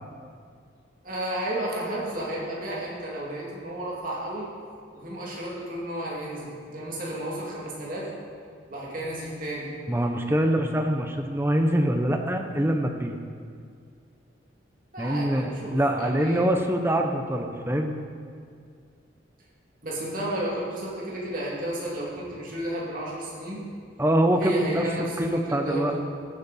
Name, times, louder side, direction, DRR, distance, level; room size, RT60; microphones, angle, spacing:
voice 1, 1.0-4.5 4.9-8.1 8.7-9.7 14.9-16.5 19.8-23.6 24.4-26.0, right 1 dB, 45° right, -5 dB, 2.5 m, -32 dB
voice 2, 9.9-13.2 15.0-18.0 24.0-25.9, right 1 dB, 15° right, 4 dB, 0.7 m, -24 dB
14.5 x 8.2 x 4.2 m, 2.2 s
head